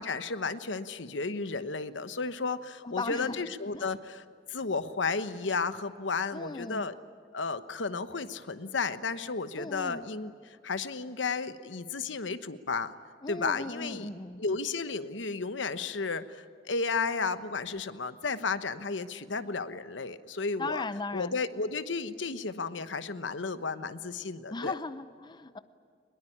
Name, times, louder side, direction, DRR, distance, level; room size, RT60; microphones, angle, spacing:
voice 1, 0.0-7.0 7.3-12.9 13.3-14.1 14.4-20.9 21.1-24.8, left 4 dB, 75° left, 12 dB, 1.1 m, -33 dB
voice 2, 2.8-3.4 3.7-3.9 6.3-6.8 9.6-10.0 13.2-14.4 20.6-21.3 24.5-25.6, left 3 dB, 25° left, 12 dB, 0.6 m, -37 dB
23.0 x 21.5 x 10.0 m, 2.2 s
head